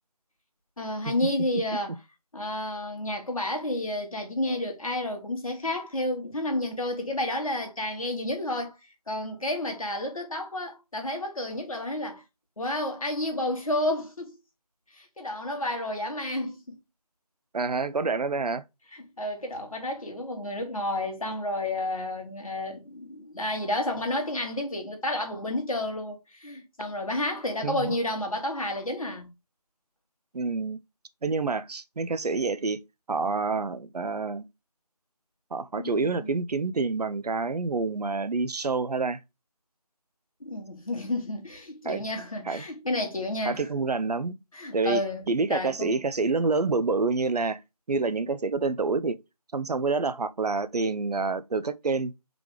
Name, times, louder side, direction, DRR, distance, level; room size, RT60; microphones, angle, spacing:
voice 1, 0.8-1.9 2.3-8.8 9.1-12.2 12.6-14.4 14.9-16.8 18.9-29.3 35.8-36.3 40.4-43.7 44.5-45.9, left 1 dB, 60° left, 1.5 m, -31 dB
voice 2, 17.5-18.6 27.6-28.0 30.3-30.8 31.2-32.8 33.1-34.4 35.5-39.2 41.9-42.0 42.5-42.7 43.4-44.4 44.7-47.6 47.9-49.2 49.5-52.1, right 4 dB, 75° right, 0.5 m, -27 dB
3.7 x 3.4 x 3.1 m
figure-of-eight pair, 175°, 20 cm